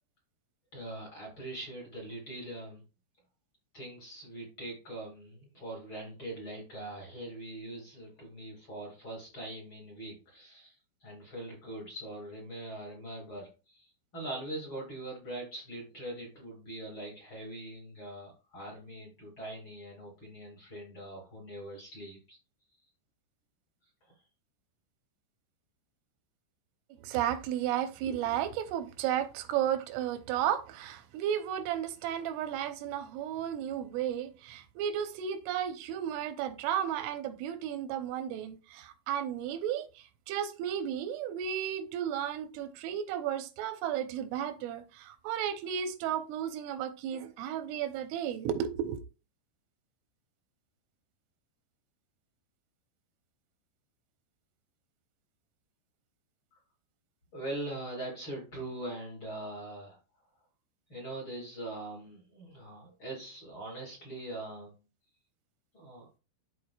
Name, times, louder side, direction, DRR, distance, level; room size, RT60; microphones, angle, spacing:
voice 1, 0.7-2.8 3.7-22.4 24.0-24.2 56.5-56.6 57.3-60.0 60.9-64.7 65.7-66.1, right 1 dB, 35° left, 2.2 m, -42 dB
voice 2, 27.0-49.0, right 10 dB, 90° right, 3.4 m, -33 dB
13.0 x 4.7 x 2.4 m
omnidirectional pair, 5.5 m